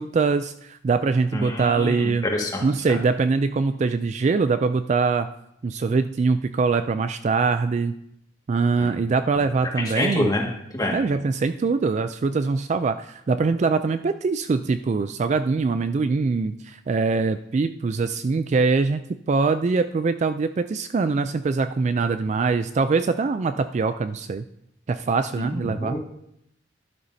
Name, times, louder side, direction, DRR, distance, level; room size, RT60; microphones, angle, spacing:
voice 1, 0.0-2.2 2.6-5.3 5.6-7.9 8.5-10.3 10.9-19.0 19.3-24.4 24.9-26.0, right 4 dB, 40° right, 10 dB, 0.3 m, -23 dB
voice 2, 1.3-2.6 8.8-8.9 10.0-10.4 10.7-11.0 25.4-26.2, left 1 dB, 20° left, -1 dB, 1.8 m, -27 dB
11.5 x 11.5 x 2.7 m, 0.76 s
head